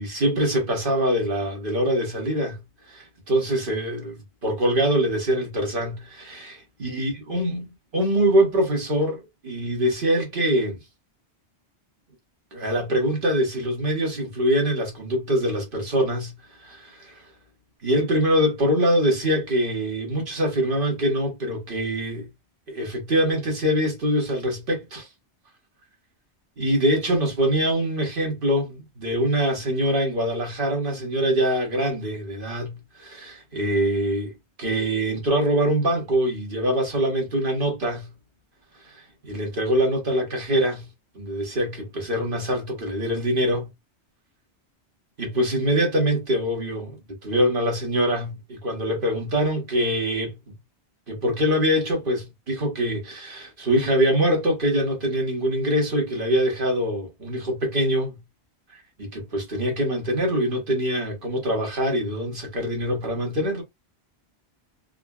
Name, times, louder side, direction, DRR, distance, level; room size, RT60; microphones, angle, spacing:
voice 1, 0.0-2.6 2.9-10.8 12.5-16.3 16.6-17.2 17.8-22.3 22.7-25.1 26.6-38.1 38.8-40.9 41.1-43.7 45.2-47.0 47.2-50.3 51.1-58.2 58.7-63.6, equal, 50° right, 1.3 m, -24 dB
3.8 x 2.1 x 2.3 m
omnidirectional pair, 1.1 m